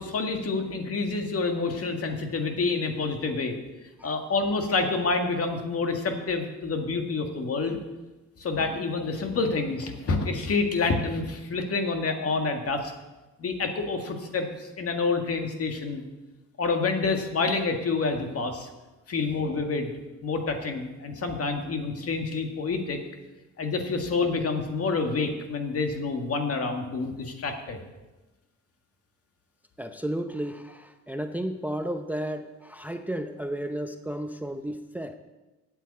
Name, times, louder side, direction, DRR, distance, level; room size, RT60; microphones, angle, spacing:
voice 1, 0.0-3.6 4.0-7.8 8.4-12.9 13.4-16.0 16.6-18.7 19.1-19.9 20.2-23.0 23.6-27.8, left 4 dB, 50° left, 4 dB, 1.9 m, -28 dB
voice 2, 29.8-35.2, right 1 dB, 5° right, 7 dB, 0.6 m, -33 dB
8.2 x 8.2 x 8.5 m, 1.1 s
cardioid pair, 90°, 30 cm